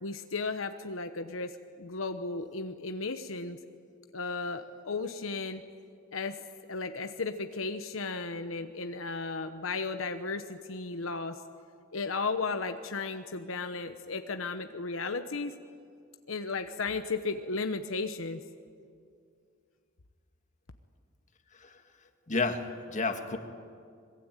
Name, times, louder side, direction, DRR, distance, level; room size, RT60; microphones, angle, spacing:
voice 1, 0.0-3.6 4.1-5.6 6.1-6.4 6.7-11.4 11.9-15.5 16.3-18.4, left 4 dB, 75° left, 8 dB, 1.1 m, -35 dB
voice 2, 22.3-23.4, left 3 dB, 40° left, 6 dB, 2.0 m, -31 dB
25.5 x 21.5 x 9.1 m, 2.3 s
head